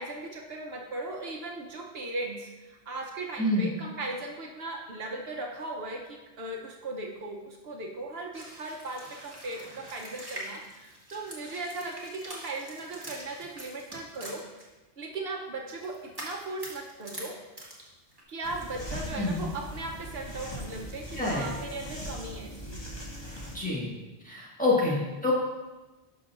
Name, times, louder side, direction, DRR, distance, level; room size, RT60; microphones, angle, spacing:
voice 1, 0.0-14.4 15.0-17.3 18.3-22.9, right 2 dB, 70° right, 0 dB, 1.0 m, -38 dB
sound 1, 8.3-14.6 15.7-17.3 17.6-18.2, right 1 dB, 20° right, 1.4 m, -44 dB
sound 2, 18.4-23.6, equal, 25° left, 1.4 m, -40 dB
voice 2, 21.1-21.5 23.5-23.9 24.2-25.3, left 2 dB, 10° left, -6 dB, 1.6 m, -27 dB
11.5 x 6.0 x 2.5 m, 1.1 s
omnidirectional pair, 1.1 m